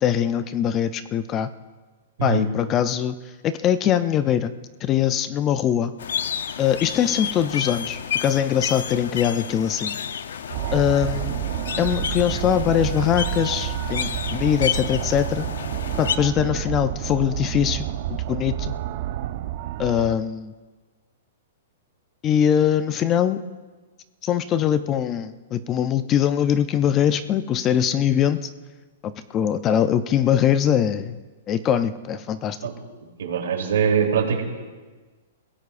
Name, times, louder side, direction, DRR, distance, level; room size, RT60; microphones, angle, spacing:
voice 1, 0.0-1.5 2.2-3.2 3.4-4.5 4.8-5.9 6.6-10.0 10.7-11.4 11.8-15.5 16.0-18.7 19.8-20.5 22.2-23.4 24.2-28.5 29.0-31.2 31.5-32.6, left 9 dB, 15° left, 12 dB, 0.4 m, -22 dB
sound 1, 6.0-16.2, left 8 dB, 75° left, 0.7 m, -31 dB
sound 2, 10.5-20.2, right 12 dB, 35° right, 0.5 m, -29 dB
voice 2, 33.2-34.4, right 7 dB, 80° right, 1 dB, 3.1 m, -22 dB
29.5 x 16.5 x 2.5 m, 1.3 s
hypercardioid pair, 175°, 0 cm